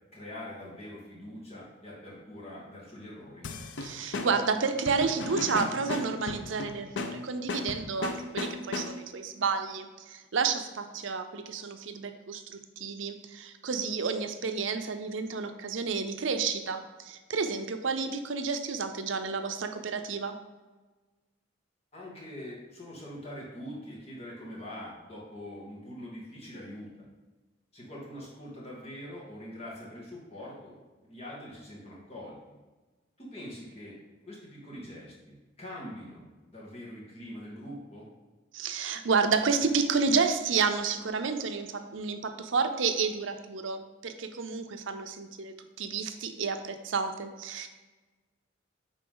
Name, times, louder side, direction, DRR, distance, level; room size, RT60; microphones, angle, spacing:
voice 1, 0.1-3.5 21.9-27.1 27.7-32.4 33.2-34.0 34.3-38.1, left 1 dB, 30° left, -5 dB, 2.1 m, -43 dB
sound 1, 3.4-9.2, left 3 dB, 70° left, 0.6 m, -36 dB
voice 2, 3.8-20.3 38.5-47.7, right 5 dB, 75° right, 7 dB, 0.6 m, -30 dB
9.9 x 3.8 x 3.9 m, 1.2 s
head